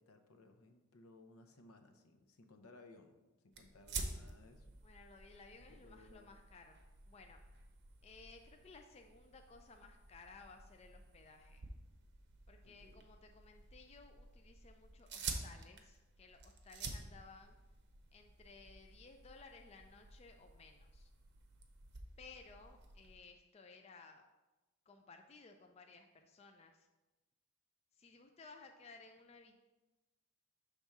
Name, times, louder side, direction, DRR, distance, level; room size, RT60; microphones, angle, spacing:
voice 1, 0.0-4.7 5.6-6.4 12.6-13.1, left 2 dB, 75° left, 6 dB, 0.7 m, -61 dB
sound 1, 3.5-23.2, right 4 dB, 50° right, 0.7 m, -50 dB
voice 2, 4.8-7.4 8.0-11.7 12.5-17.6 18.1-21.1 22.2-24.3 24.9-26.9 27.9-29.6, left 4 dB, 30° left, 4 dB, 0.3 m, -58 dB
6.0 x 3.5 x 5.4 m, 1.1 s
head